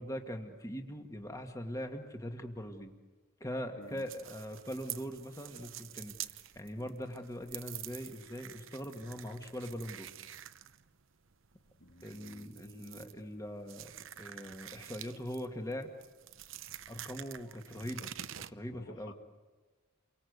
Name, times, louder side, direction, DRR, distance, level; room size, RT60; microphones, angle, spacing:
voice 1, 0.0-2.9 3.4-6.1 6.6-10.1 12.0-13.9 14.2-15.9 16.9-18.1 18.5-19.1, equal, 15° left, 4 dB, 1.9 m, -41 dB
sound 1, 3.8-18.5, right 11 dB, 60° right, 0.9 m, -48 dB
voice 2, 11.8-12.6 18.7-19.1, left 1 dB, 55° left, 4 dB, 1.8 m, -53 dB
30.0 x 24.0 x 8.2 m, 1.3 s
head